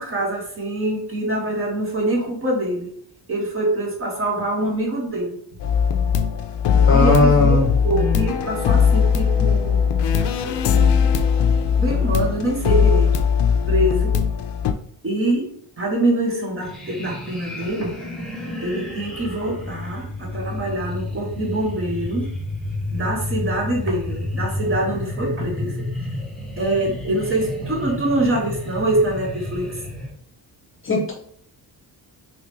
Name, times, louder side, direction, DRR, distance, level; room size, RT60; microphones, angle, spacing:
voice 1, 0.0-2.9 3.3-5.4 6.9-9.9 10.2-11.1 11.8-13.1 13.7-14.1 15.0-15.5 15.8-18.0 18.6-22.3 22.9-25.8 26.6-29.8, right 1 dB, 30° right, -1 dB, 0.9 m, -24 dB
sound 1, 5.6-14.7, left 7 dB, 80° left, 0.5 m, -19 dB
voice 2, 6.9-7.7 30.9-31.1, left 2 dB, 30° left, 0 dB, 0.7 m, -17 dB
sound 2, 16.6-30.1, left 2 dB, ahead, 0.7 m, -31 dB
3.5 x 3.1 x 3.2 m, 0.63 s
wide cardioid pair, 165°, 41 cm